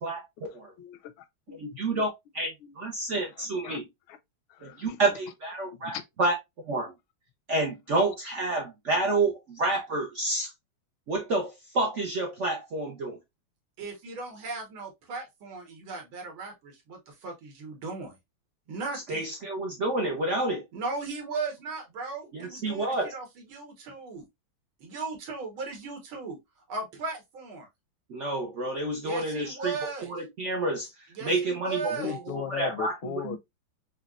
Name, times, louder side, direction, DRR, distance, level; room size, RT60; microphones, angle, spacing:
voice 1, 0.4-1.6 1.9-2.0 2.6-2.7 3.4-3.8 4.1-4.2 4.5-5.0 5.7-6.0 31.9-33.4, left 9 dB, 85° left, 1.4 m, -38 dB
voice 2, 1.5-3.8 4.6-6.3 6.6-6.9 7.5-10.5 11.1-13.2 19.1-20.6 22.3-23.1 28.1-29.7 30.0-30.9 31.2-32.9 33.2-33.4, right 2 dB, 70° right, 0.7 m, -29 dB
voice 3, 13.8-18.2 18.7-19.2 20.7-24.2 24.8-26.4 26.7-27.7 29.0-30.1 31.2-32.2, right 4 dB, 90° right, 2.0 m, -37 dB
5.1 x 2.3 x 2.3 m
omnidirectional pair, 2.2 m